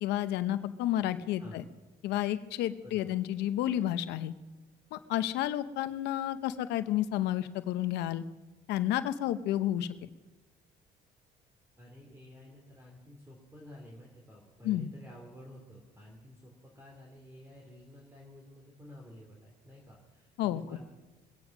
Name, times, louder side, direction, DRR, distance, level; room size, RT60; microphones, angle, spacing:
voice 1, 0.0-1.6 2.0-4.3 4.9-8.2 8.7-10.1 14.6-14.9 20.4-20.8, left 12 dB, 85° left, 12 dB, 0.8 m, -31 dB
voice 2, 2.8-3.1 11.8-20.8, left 1 dB, 15° right, -1 dB, 3.0 m, -52 dB
21.5 x 9.0 x 6.0 m, 1.2 s
cardioid pair, 110°, 17 cm